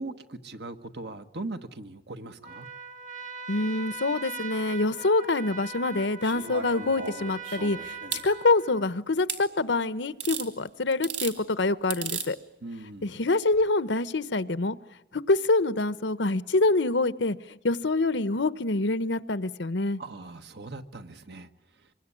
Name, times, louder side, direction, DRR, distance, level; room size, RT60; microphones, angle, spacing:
voice 1, 0.0-2.7 12.6-13.1 20.0-21.5 21.8-21.9, right 2 dB, 70° right, 1.4 m, -40 dB
Trumpet, 2.4-8.9, right 5 dB, 45° right, 1.9 m, -41 dB
voice 2, 3.5-8.0 8.2-12.4 13.0-14.8 15.1-20.0, left 2 dB, 90° left, 1.0 m, -26 dB
sound 1, 6.2-8.3 9.3-9.4 10.2-10.5 10.9-11.4 11.9-12.3 13.5-13.6, right 6 dB, 90° right, 3.2 m, -35 dB
26.0 x 23.0 x 9.9 m
head